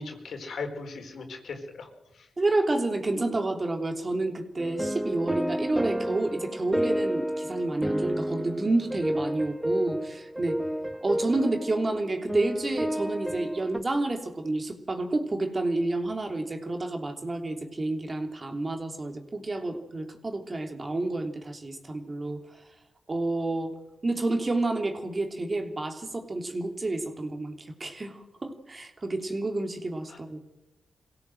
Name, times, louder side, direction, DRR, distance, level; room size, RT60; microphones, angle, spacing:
voice 1, 0.0-2.3 30.1-30.2, left 4 dB, 75° left, 4 dB, 4.3 m, -38 dB
voice 2, 2.4-10.6 11.0-22.4 23.1-23.8 24.0-30.4, right 2 dB, 35° right, 4 dB, 3.3 m, -29 dB
sound 1, 4.6-13.8, equal, 10° right, 2.2 m, -31 dB
23.5 x 16.5 x 7.9 m, 0.93 s
cardioid pair, 55°, 0 cm